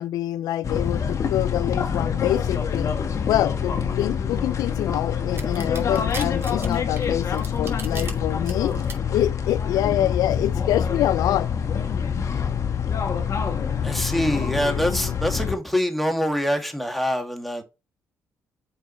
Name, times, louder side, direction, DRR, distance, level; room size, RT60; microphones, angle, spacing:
voice 1, 0.0-2.9 3.2-8.7 9.1-11.5, left 13 dB, 75° left, 0.4 m, -26 dB
sound 1, 0.6-15.5, left 7 dB, 50° left, 1.5 m, -26 dB
sound 2, 5.4-8.1 8.5-8.9, right 4 dB, 40° right, 2.6 m, -36 dB
voice 2, 13.8-17.6, equal, ahead, 2.3 m, -25 dB
7.7 x 4.8 x 3.2 m
hypercardioid pair, 50°, 7 cm